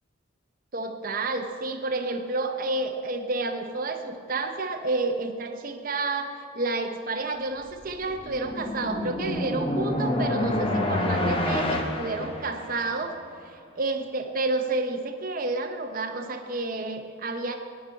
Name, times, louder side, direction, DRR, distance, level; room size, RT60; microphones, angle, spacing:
voice 1, 0.7-13.2 13.5-17.6, right 2 dB, 45° right, 6 dB, 0.7 m, -30 dB
sound 1, 7.8-13.0, left 1 dB, 25° left, 1.0 m, -28 dB
17.5 x 5.9 x 5.3 m, 2.3 s
head